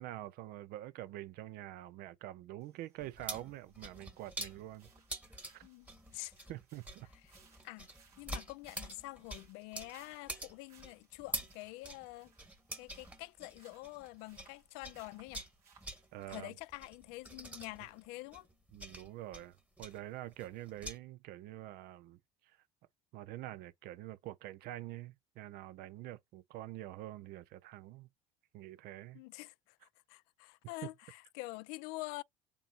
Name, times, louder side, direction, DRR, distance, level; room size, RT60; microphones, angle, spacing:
voice 1, 0.0-4.9 5.3-5.6 6.5-7.1 16.1-16.5 18.7-22.6 23.1-28.1 28.5-29.2 30.8-30.9, right 14 dB, 50° right, 0.6 m, -46 dB
sound 1, 2.6-16.3, right 5 dB, 80° right, 2.2 m, -68 dB
sound 2, 3.0-14.6 14.8-21.0, right 1 dB, 5° right, 1.2 m, -46 dB
voice 2, 8.2-12.3 12.8-15.4 16.3-18.5 29.1-29.5 30.1-32.2, left 21 dB, 60° left, 0.4 m, -46 dB
6.9 x 2.7 x 2.4 m
figure-of-eight pair, 65°, 20 cm